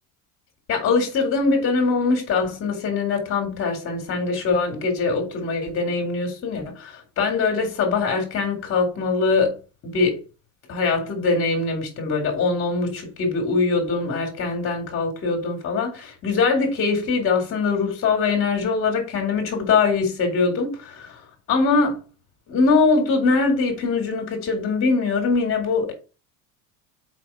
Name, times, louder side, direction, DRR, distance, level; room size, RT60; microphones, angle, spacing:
voice 1, 0.7-10.2 10.7-21.2 21.5-22.0 22.5-25.9, left 4 dB, 40° left, 2.6 m, -22 dB
4.8 x 4.1 x 5.6 m
supercardioid pair, 130°, 34 cm